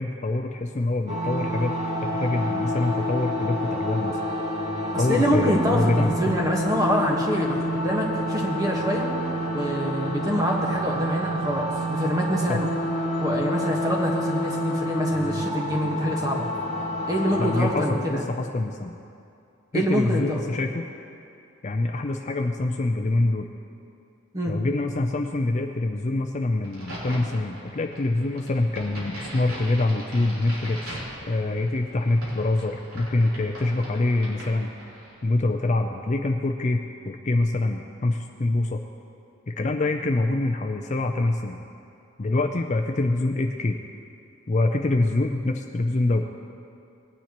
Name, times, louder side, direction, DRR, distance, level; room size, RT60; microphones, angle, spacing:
voice 1, 0.0-4.2 5.0-6.4 12.5-12.6 17.4-18.9 19.7-20.8 21.6-23.5 24.5-31.0 31.3-34.7 35.2-38.8 39.5-41.6 42.2-43.8 44.5-46.2, left 2 dB, 35° left, 4 dB, 0.4 m, -25 dB
sound 1, 1.1-17.7, equal, 30° right, 2.0 m, -28 dB
voice 2, 4.9-9.1 9.5-12.7 13.2-16.5 17.1-18.2 19.7-20.4 24.3-24.5, equal, 15° right, -1 dB, 1.3 m, -25 dB
Crack, 26.6-35.2, equal, 80° right, 3.3 m, -40 dB
19.5 x 9.9 x 3.0 m, 2.6 s
head